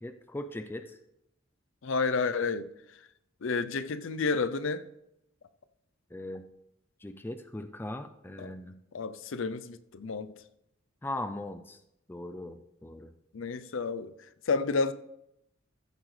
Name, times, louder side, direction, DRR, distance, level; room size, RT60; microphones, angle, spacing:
voice 1, 0.0-1.0 6.1-6.4 7.0-8.8 11.0-11.8 12.1-13.1, left 1 dB, 10° left, 0.4 m, -39 dB
voice 2, 1.8-2.7 3.4-4.8 8.4-8.5 8.9-10.3 13.3-14.1 14.5-14.9, left 4 dB, 70° left, 0.5 m, -30 dB
14.5 x 7.5 x 3.2 m
head